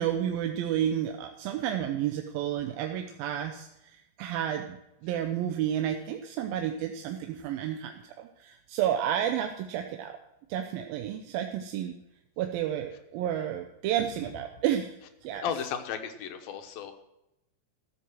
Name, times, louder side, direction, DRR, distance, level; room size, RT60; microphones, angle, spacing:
voice 1, 0.0-10.2 10.5-12.0 12.4-15.0 15.2-15.5, right 10 dB, 85° right, 5 dB, 2.5 m, -31 dB
voice 2, 15.4-16.9, left 8 dB, 80° left, 6 dB, 2.9 m, -34 dB
13.5 x 7.7 x 6.1 m, 0.88 s
omnidirectional pair, 4.1 m